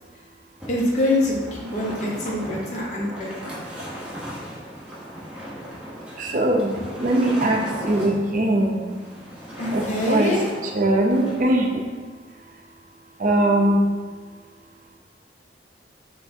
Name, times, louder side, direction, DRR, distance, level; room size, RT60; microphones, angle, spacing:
sound 1, 0.6-11.5, equal, 5° right, 0.9 m, -37 dB
voice 1, 0.7-3.5 9.6-10.4, left 1 dB, 40° left, -3 dB, 0.9 m, -25 dB
voice 2, 6.0-9.3 9.7-10.3 10.6-11.9 12.3-12.6 13.2-13.8, right 1 dB, 45° right, 1 dB, 0.6 m, -22 dB
5.6 x 3.3 x 2.7 m, 1.5 s
head